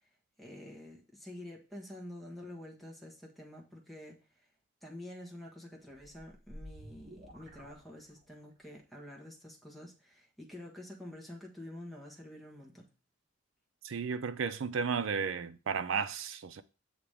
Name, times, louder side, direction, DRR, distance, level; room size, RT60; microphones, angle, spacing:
voice 1, 0.4-4.4 4.8-12.9, left 1 dB, ahead, 1.4 m, -48 dB
sound 1, 5.8-8.5, equal, 45° right, 1.4 m, -51 dB
voice 2, 13.8-16.6, right 6 dB, 85° right, 0.4 m, -33 dB
7.2 x 2.9 x 4.8 m
head